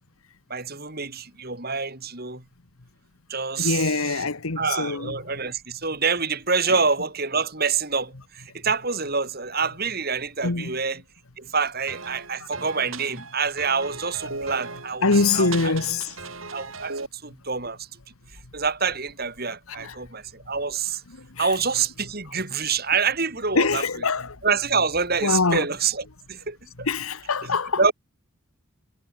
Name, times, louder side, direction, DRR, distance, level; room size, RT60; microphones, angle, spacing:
voice 1, 0.5-2.4 3.3-4.2 4.6-11.0 11.4-15.7 16.5-17.9 18.5-21.0 21.4-23.8 24.4-26.9 27.8-27.9, right 5 dB, 45° right, 3.9 m, -26 dB
voice 2, 3.6-5.1 6.7-6.8 10.4-10.7 15.0-16.2 19.7-20.0 21.2-21.5 23.5-24.4 25.2-25.7 26.8-27.8, left 4 dB, 85° left, 1.4 m, -24 dB
sound 1, 11.9-17.1, right 4 dB, 75° right, 7.3 m, -37 dB
head